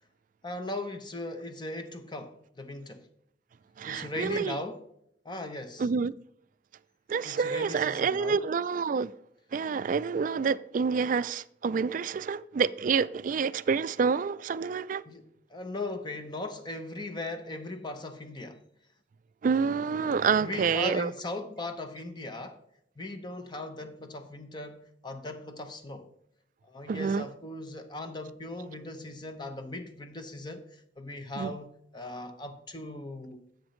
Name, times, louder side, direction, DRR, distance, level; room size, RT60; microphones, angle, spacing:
voice 1, 0.4-3.1 3.9-4.8 5.2-5.9 7.2-8.4 15.1-18.6 20.4-22.6 23.0-26.1 26.6-33.4, left 2 dB, 25° left, 0.7 m, -38 dB
voice 2, 3.8-4.5 5.8-6.1 7.1-9.1 9.5-15.0 19.4-21.1 26.9-27.2 31.4-31.5, right 5 dB, 45° right, 0.3 m, -28 dB
10.5 x 8.0 x 3.1 m
head